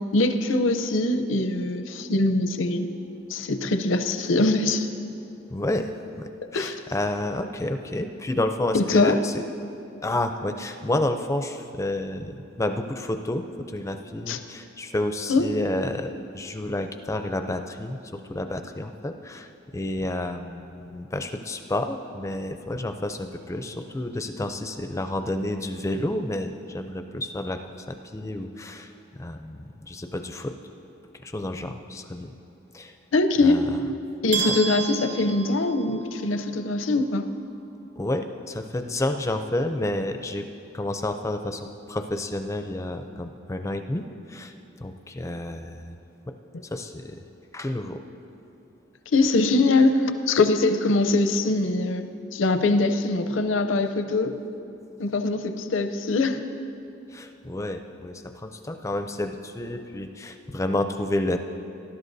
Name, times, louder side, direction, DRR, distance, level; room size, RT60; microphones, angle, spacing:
voice 1, 0.1-2.9 3.3-4.9 6.5-6.8 8.7-9.2 14.3-14.4 15.3-15.5 33.1-33.6 34.2-37.2 49.1-52.1 52.3-54.3 55.0-56.4, left 2 dB, 75° left, 8 dB, 0.6 m, -22 dB
voice 2, 5.5-5.9 6.2-9.4 10.0-27.6 27.9-28.9 29.2-30.5 31.2-32.3 32.7-32.9 33.4-33.8 34.4-34.6 38.0-40.5 40.7-44.5 44.8-46.0 46.7-47.2 47.5-48.0 57.1-61.4, left 1 dB, 15° left, 7 dB, 0.4 m, -30 dB
sound 1, 34.3-36.3, right 7 dB, 70° right, 1.2 m, -31 dB
19.0 x 11.5 x 2.7 m, 2.7 s
head